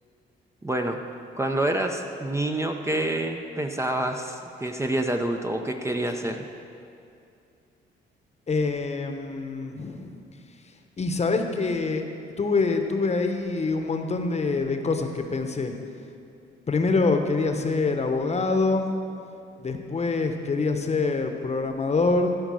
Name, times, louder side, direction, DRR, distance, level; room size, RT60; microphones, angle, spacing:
voice 1, 0.6-1.0 1.4-6.5, right 1 dB, 15° right, 3 dB, 0.6 m, -27 dB
voice 2, 8.5-10.2 11.0-12.1 12.4-15.7 16.7-18.9 19.6-22.4, left 3 dB, 35° left, 5 dB, 1.0 m, -25 dB
14.5 x 5.0 x 6.2 m, 2.5 s
cardioid pair, 90°, 20 cm